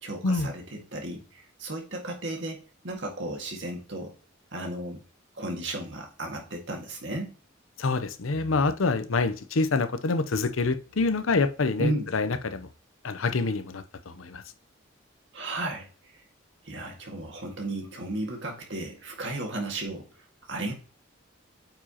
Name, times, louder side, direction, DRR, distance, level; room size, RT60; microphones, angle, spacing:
voice 1, 0.0-4.1 4.5-5.0 5.3-7.3 11.8-12.1 15.3-16.2 16.6-20.0 20.4-20.7, right 1 dB, 65° right, 1.9 m, -34 dB
voice 2, 7.8-12.7 13.0-14.4, left 3 dB, 90° left, 0.7 m, -26 dB
8.9 x 4.8 x 2.9 m
head